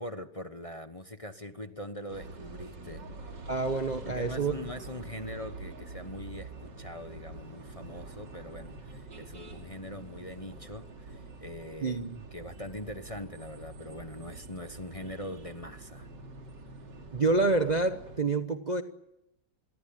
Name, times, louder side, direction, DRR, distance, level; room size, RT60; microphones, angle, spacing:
voice 1, 0.0-3.0 4.0-12.0 12.3-16.1, left 1 dB, 20° left, 8 dB, 1.1 m, -42 dB
sound 1, 2.1-18.2, right 3 dB, 75° right, 3.4 m, -46 dB
voice 2, 3.5-4.5 11.8-12.2 17.1-18.8, right 3 dB, 30° right, 7 dB, 0.9 m, -27 dB
27.5 x 22.5 x 8.9 m, 0.89 s
omnidirectional pair, 1.9 m